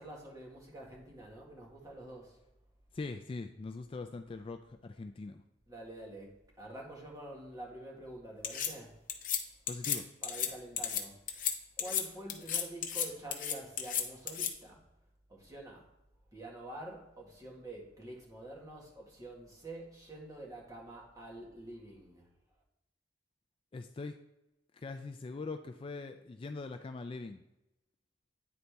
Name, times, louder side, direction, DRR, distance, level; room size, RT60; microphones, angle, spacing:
voice 1, 0.0-2.4 5.7-6.3 6.6-9.0 10.2-11.5 11.8-14.8 15.3-15.9 16.3-22.3, right 1 dB, 20° right, -2 dB, 1.6 m, -47 dB
voice 2, 2.9-5.4 9.7-10.1 23.7-24.2 24.7-27.4, left 3 dB, 30° left, 7 dB, 0.3 m, -42 dB
sound 1, 8.4-8.7 9.1-9.4 9.7-10.0 10.2-10.5 10.8-11.0 11.3-11.5 11.8-12.0 12.3-13.1 13.3-14.5, left 9 dB, 45° left, 0.8 m, -33 dB
9.5 x 4.1 x 3.3 m, 0.92 s
head